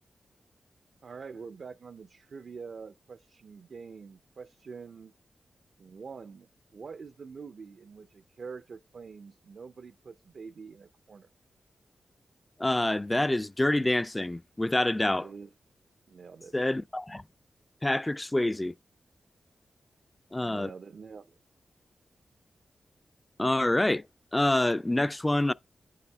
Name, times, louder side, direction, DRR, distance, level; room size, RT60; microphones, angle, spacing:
voice 1, 1.0-5.1 5.8-11.3 15.1-15.5 16.1-16.5 20.4-21.4, right 5 dB, 65° right, 0.5 m, -45 dB
voice 2, 12.6-15.3 16.5-17.2 17.8-18.7 20.3-20.7 23.4-24.0 24.3-25.5, left 1 dB, 15° left, 0.3 m, -26 dB
9.4 x 4.9 x 3.2 m
cardioid pair, 70°, 0 cm